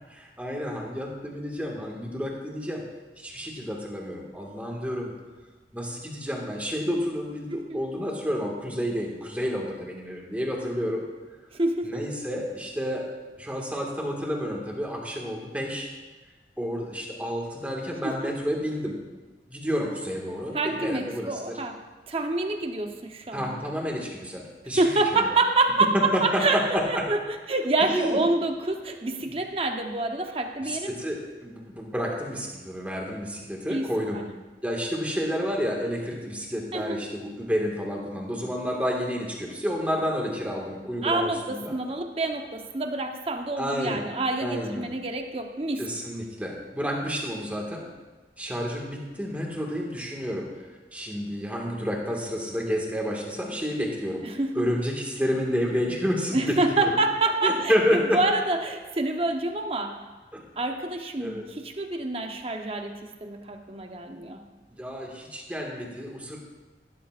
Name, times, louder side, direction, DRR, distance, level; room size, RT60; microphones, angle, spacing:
voice 1, 0.1-2.8 3.2-5.1 5.7-11.0 11.8-13.1 13.4-15.9 16.6-19.0 19.5-21.6 23.3-24.8 25.2-25.4 25.9-27.1 27.8-28.2 29.2-29.3 30.6-34.2 34.6-41.8 43.6-44.0 44.4-44.9 45.8-47.9 48.4-50.5 50.9-54.2 54.5-56.9 57.4-58.2 60.3-60.4 61.2-61.5 64.7-66.4, equal, 10° right, -1 dB, 1.8 m, -30 dB
voice 2, 7.5-7.8 11.5-12.0 18.0-18.1 20.5-21.8 22.1-23.5 24.8-27.2 27.5-31.0 33.7-33.9 34.1-34.2 36.7-37.0 41.0-41.4 41.7-45.8 54.3-54.6 56.3-60.0 60.6-62.9 63.2-64.4, right 2 dB, 35° right, 4 dB, 0.9 m, -27 dB
15.5 x 12.5 x 2.5 m, 1.2 s
head